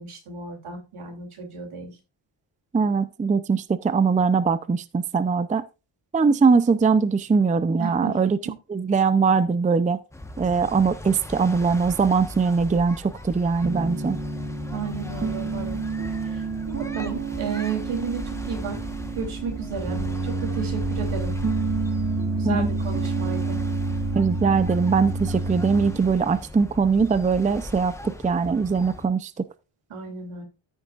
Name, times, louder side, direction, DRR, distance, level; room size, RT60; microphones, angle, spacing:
voice 1, 0.0-1.9 7.8-8.5 14.7-15.8 16.2-18.8 19.1-21.3 22.4-23.6 29.9-30.4, right 6 dB, 80° right, 2.8 m, -33 dB
voice 2, 2.7-5.6 6.1-8.4 8.7-10.0 10.4-14.2 22.4-22.7 24.2-29.3, right 5 dB, 15° right, 0.5 m, -21 dB
sound 1, 10.1-29.1, left 1 dB, 5° left, 1.1 m, -38 dB
Piano, 13.6-26.1, right 3 dB, 35° right, 3.0 m, -29 dB
13.5 x 6.5 x 2.4 m
cardioid pair, 110°, 49 cm